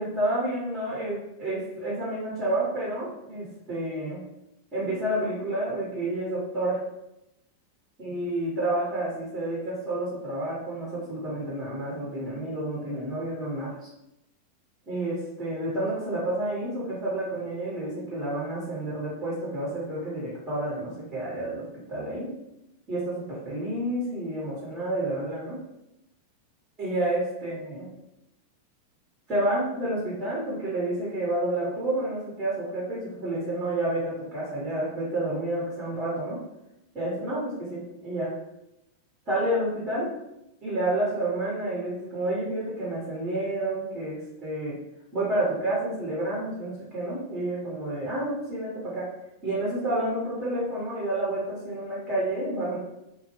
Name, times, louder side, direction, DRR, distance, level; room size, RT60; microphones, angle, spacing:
voice 1, 0.0-4.2 4.7-6.8 8.0-13.8 14.9-22.3 22.9-25.6 26.8-27.9 29.3-36.4 36.9-38.3 39.3-40.1 40.6-44.8 45.1-49.1 49.4-52.8, right 1 dB, 25° right, -8 dB, 1.0 m, -29 dB
2.1 x 2.1 x 3.1 m, 0.88 s
figure-of-eight pair, 90°, 0 cm